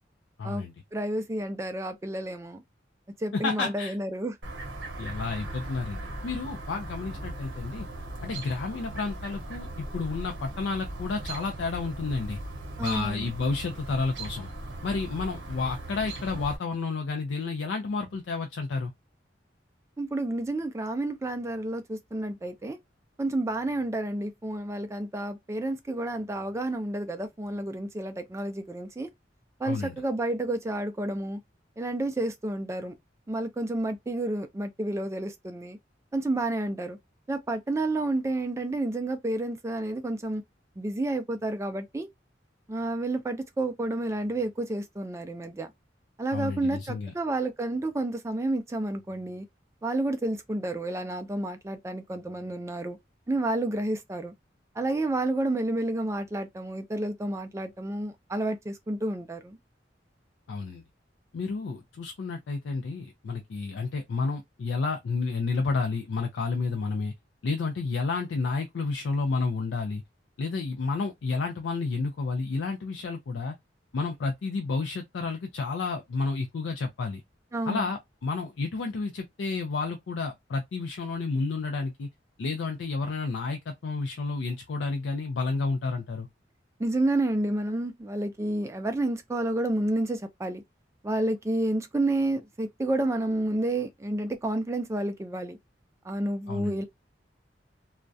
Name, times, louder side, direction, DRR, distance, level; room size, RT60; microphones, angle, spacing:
voice 1, 0.4-0.7 3.3-4.0 5.0-7.9 8.2-12.4 12.8-14.5 14.8-18.9 29.7-30.0 46.3-47.1 60.5-60.8 61.3-67.1 67.4-70.0 70.4-73.5 73.9-77.2 77.6-82.1 82.4-86.3 96.5-96.8, left 4 dB, 80° left, 0.4 m, -31 dB
voice 2, 0.9-2.6 3.2-4.3 12.8-13.3 20.0-22.8 23.2-29.1 29.6-31.4 31.8-32.9 33.3-35.8 36.1-37.0 37.3-40.4 40.8-42.1 42.7-45.7 46.2-49.5 49.8-53.0 53.3-54.3 54.8-59.6 77.5-77.9 86.8-90.6 91.0-95.6 96.1-96.8, right 1 dB, 15° right, 0.3 m, -30 dB
Chirp tweet, 4.4-16.6, right 1 dB, 85° right, 0.7 m, -38 dB
2.3 x 2.1 x 2.5 m
head